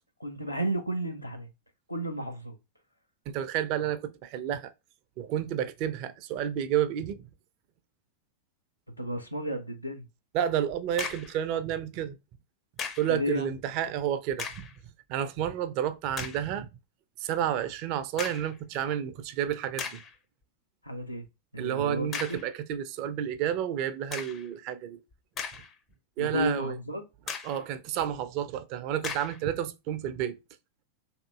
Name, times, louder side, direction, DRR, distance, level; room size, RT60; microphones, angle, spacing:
voice 1, 0.2-1.5 1.9-2.6 9.0-10.1 13.1-13.5 20.8-21.2 21.5-22.4 26.2-27.0, right 1 dB, 90° left, 0.5 m, -32 dB
voice 2, 3.3-4.7 5.2-7.3 10.3-12.2 13.0-14.7 15.1-16.7 17.2-20.0 21.6-25.0 26.2-26.8 27.4-30.4, right 10 dB, 45° right, 0.4 m, -30 dB
sound 1, 10.7-11.4 12.8-13.2 14.3-14.8 15.4-15.5 16.1-16.5 18.2-18.6 19.2-19.3 19.8-20.2 22.1-22.5 24.1-24.5 25.1-25.9 26.3-26.4 27.3-27.6 29.0-29.4, left 6 dB, 25° left, 0.5 m, -37 dB
2.8 x 2.5 x 2.3 m
figure-of-eight pair, 90°, 0 cm